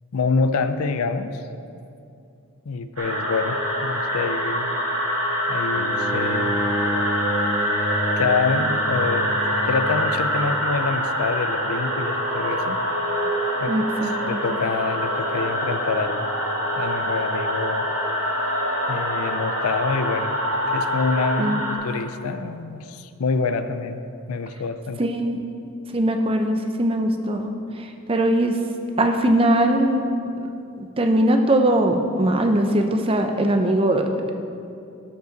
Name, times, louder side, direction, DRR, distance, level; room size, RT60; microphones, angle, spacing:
voice 1, 0.1-1.4 2.7-4.7 5.5-6.6 8.2-9.4 9.7-12.8 13.6-13.7 14.3-16.3 16.8-17.9 18.9-20.4 20.7-24.0 24.3-25.0, left 4 dB, 80° left, 10 dB, 0.5 m, -26 dB
sound 1, 3.0-21.7, equal, 80° right, 1.6 m, -25 dB
Bowed string instrument, 5.8-11.0, equal, 55° left, 1.1 m, -30 dB
voice 2, 13.7-14.4 21.4-21.6 25.0-25.4 25.9-27.5 27.8-28.6 29.0-30.0 30.8-34.3, right 1 dB, 25° right, 5 dB, 0.5 m, -21 dB
13.0 x 5.3 x 3.9 m, 2.6 s
head